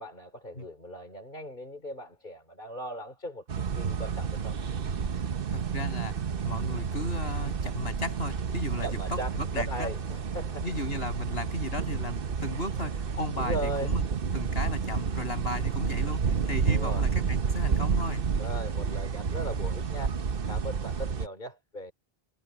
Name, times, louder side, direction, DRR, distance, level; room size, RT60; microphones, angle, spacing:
voice 1, 0.0-4.6 8.8-10.7 12.8-12.9 13.4-13.9 16.7-17.0 18.4-21.9, equal, 50° left, 3.6 m, -38 dB
sound 1, 3.5-21.3, right 6 dB, 60° right, 1.1 m, -30 dB
voice 2, 5.5-6.1 6.4-9.9 10.6-14.0 14.3-18.2, left 1 dB, 70° left, 7.6 m, -35 dB
omnidirectional pair, 1.1 m